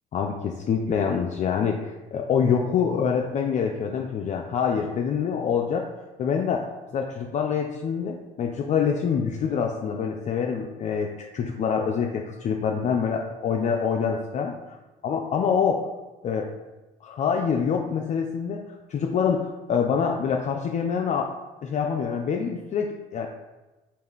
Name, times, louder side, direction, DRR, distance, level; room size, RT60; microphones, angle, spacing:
voice 1, 0.1-5.9 6.2-6.6 6.9-14.8 15.0-15.8 16.2-16.5 17.0-21.3 21.6-23.4, left 6 dB, 45° left, 1 dB, 0.4 m, -26 dB
3.2 x 2.5 x 3.6 m, 1.1 s
supercardioid pair, 70°, 18 cm